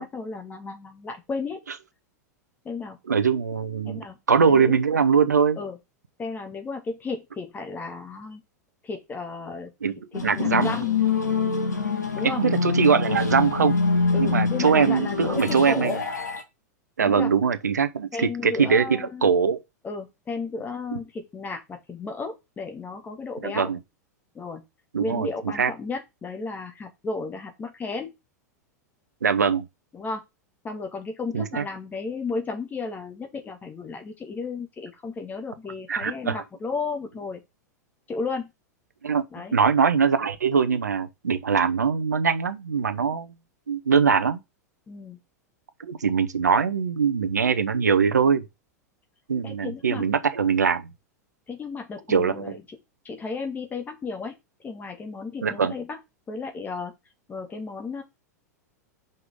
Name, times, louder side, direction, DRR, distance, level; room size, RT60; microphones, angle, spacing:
voice 1, 0.0-1.6 2.6-3.0 3.9-4.8 5.5-5.8 6.2-8.4 8.8-9.7 10.1-11.0 12.1-12.4 14.1-16.0 17.0-17.3 18.1-19.3 19.8-23.7 24.3-24.6 25.0-28.2 29.9-30.2 30.6-37.4 38.1-38.5 39.3-39.6 43.1-43.2 44.9-45.2 49.4-50.1 51.5-52.6 53.1-54.4 54.6-56.0 56.3-56.9 57.3-58.0, left 4 dB, 20° left, 1.8 m, -34 dB
voice 2, 3.1-5.6 9.8-9.9 10.2-10.7 12.2-13.8 14.2-16.0 17.0-19.6 23.4-23.8 24.9-25.3 25.5-25.7 29.2-29.6 31.3-31.6 35.9-36.4 39.0-39.2 39.5-43.3 43.7-44.4 45.8-48.4 49.3-50.9 52.1-52.6 55.4-55.7, right 6 dB, 75° right, 0.7 m, -22 dB
sound 1, 10.1-16.4, left 4 dB, 75° left, 1.4 m, -25 dB
5.7 x 5.3 x 3.6 m
figure-of-eight pair, 90°, 9 cm